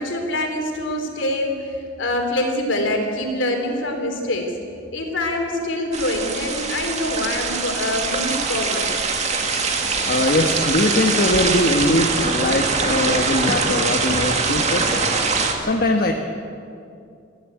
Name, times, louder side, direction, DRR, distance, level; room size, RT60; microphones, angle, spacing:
voice 1, 0.0-4.5 4.9-8.9, left 1 dB, 65° left, 3 dB, 3.7 m, -25 dB
sound 1, 5.9-15.5, right 4 dB, 35° right, 2.3 m, -23 dB
voice 2, 10.1-14.8 15.7-16.1, left 1 dB, 50° left, 3 dB, 1.3 m, -21 dB
23.0 x 15.0 x 8.5 m, 2.5 s
head